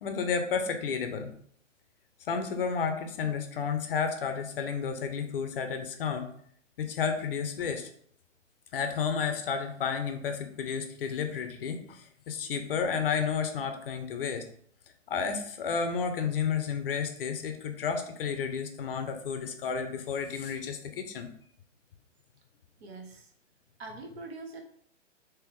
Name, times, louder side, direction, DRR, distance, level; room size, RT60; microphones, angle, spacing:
voice 1, 0.0-1.3 2.3-6.3 6.8-7.9 8.7-14.5 15.1-21.3, left 6 dB, 50° left, 6 dB, 0.6 m, -31 dB
voice 2, 22.8-23.3 23.8-24.6, right 3 dB, 55° right, 4 dB, 0.9 m, -43 dB
3.5 x 3.1 x 3.0 m, 0.64 s
hypercardioid pair, 145°, 38 cm